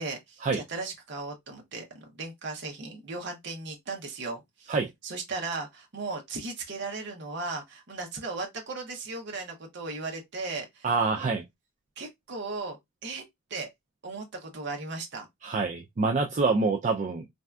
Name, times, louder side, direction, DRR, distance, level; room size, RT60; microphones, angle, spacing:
voice 1, 0.0-4.7 5.0-10.9 12.0-13.2 13.5-13.7 14.0-15.3, right 3 dB, 55° right, 0.7 m, -36 dB
voice 2, 10.8-11.4 15.4-17.3, right 4 dB, 35° right, 0.3 m, -26 dB
3.3 x 2.6 x 2.2 m
head